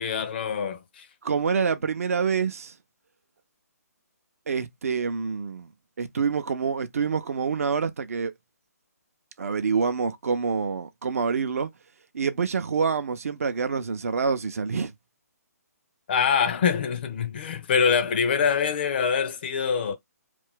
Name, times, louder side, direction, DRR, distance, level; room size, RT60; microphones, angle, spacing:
voice 1, 0.0-1.1 16.1-20.0, left 6 dB, 35° left, 0.5 m, -24 dB
voice 2, 1.2-2.7 4.5-5.7 6.0-8.3 9.4-11.7 12.1-14.9, right 5 dB, 60° right, 0.5 m, -26 dB
2.5 x 2.2 x 3.6 m
figure-of-eight pair, 145°, 9 cm